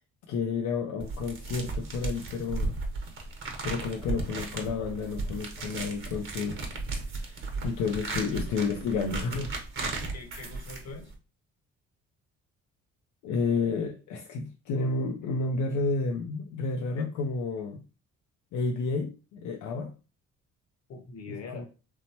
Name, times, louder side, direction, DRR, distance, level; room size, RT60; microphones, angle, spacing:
voice 1, 0.3-2.8 3.6-6.6 7.1-9.5 13.2-17.8 18.5-19.9 21.5-21.7, left 4 dB, 80° left, 3 dB, 0.5 m, -31 dB
sound 1, 1.0-11.2, right 3 dB, 45° right, 0.9 m, -35 dB
voice 2, 10.0-11.1 16.9-17.1 20.9-21.7, left 4 dB, 60° left, 4 dB, 0.8 m, -43 dB
3.0 x 2.1 x 2.8 m, 0.33 s
cardioid pair, 90°, 30 cm